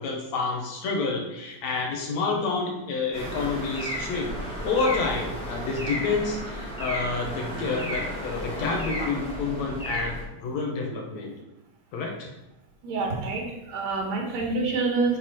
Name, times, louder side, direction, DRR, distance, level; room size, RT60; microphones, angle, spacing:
voice 1, 0.0-11.3 11.9-12.3, left 4 dB, 70° left, 0 dB, 2.4 m, -29 dB
sound 1, 3.1-10.2, equal, 5° left, 0.9 m, -33 dB
voice 2, 12.8-15.2, right 3 dB, 65° right, -1 dB, 2.7 m, -27 dB
6.7 x 5.9 x 4.4 m, 0.91 s
omnidirectional pair, 3.4 m